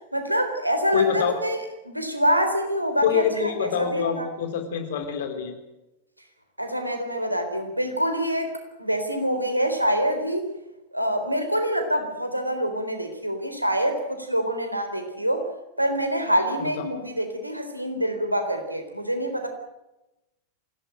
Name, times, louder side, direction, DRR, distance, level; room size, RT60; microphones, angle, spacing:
voice 1, 0.1-1.6 1.8-4.3 6.6-8.5 8.8-10.5 10.9-15.5 15.8-19.5, equal, 85° right, 6 dB, 3.9 m, -26 dB
voice 2, 0.9-1.4 3.0-5.6 16.6-16.8, left 8 dB, 55° left, 7 dB, 3.8 m, -26 dB
24.5 x 17.0 x 9.2 m, 0.96 s
figure-of-eight pair, 90°, 0 cm